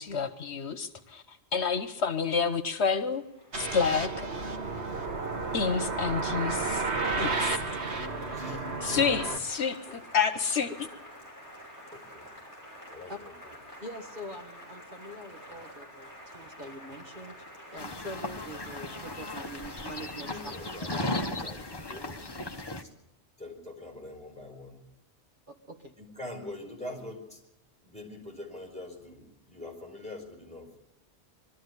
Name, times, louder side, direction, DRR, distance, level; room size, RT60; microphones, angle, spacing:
voice 1, 0.0-3.2 3.6-4.3 5.5-6.9 7.2-7.6 8.8-10.7, left 6 dB, 70° left, 11 dB, 1.3 m, -29 dB
Applause, 2.9-21.5, equal, 15° right, 6.3 m, -48 dB
sound 1, 3.5-9.4, right 3 dB, 70° right, 1.8 m, -32 dB
voice 2, 8.2-9.2 11.9-12.2 12.9-13.3 20.2-22.5 22.8-22.9 23.4-24.8 26.0-27.4 27.8-30.8, left 2 dB, 5° left, 1 dB, 5.0 m, -44 dB
voice 3, 13.8-16.1 16.3-17.4 17.7-20.5 20.9-21.0 25.5-25.9, equal, 45° right, 3 dB, 2.0 m, -43 dB
sound 2, 17.8-22.8, left 2 dB, 25° left, 1.1 m, -36 dB
22.5 x 13.5 x 9.6 m, 0.85 s
omnidirectional pair, 1.1 m